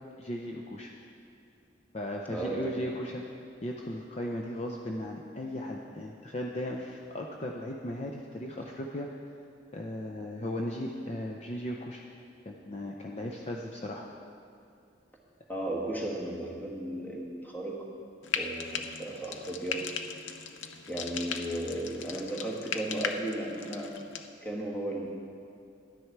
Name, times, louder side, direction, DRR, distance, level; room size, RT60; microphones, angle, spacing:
voice 1, 0.2-0.9 1.9-3.2 3.6-9.1 9.7-12.0 12.5-14.0, left 1 dB, 35° left, 0 dB, 0.6 m, -36 dB
voice 2, 2.3-2.9 15.5-17.8 18.4-19.8 20.9-23.9 24.4-25.2, right 1 dB, 10° left, -2 dB, 1.3 m, -35 dB
Frying (food), 18.2-24.3, left 6 dB, 80° left, 0.6 m, -38 dB
11.5 x 9.6 x 4.6 m, 2.5 s
head